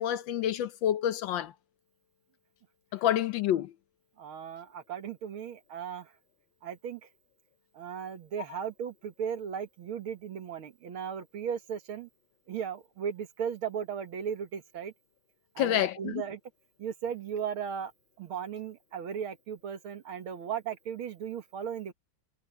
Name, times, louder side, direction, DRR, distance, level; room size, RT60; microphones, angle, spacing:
voice 1, 0.0-1.5 2.9-3.7 15.6-16.2, left 11 dB, 70° left, 1.3 m, -28 dB
voice 2, 4.2-6.1 6.6-7.0 7.7-12.1 12.5-14.9 15.6-16.4 16.8-17.9 18.2-21.9, right 8 dB, 70° right, 2.3 m, -36 dB
omnidirectional pair, 2.4 m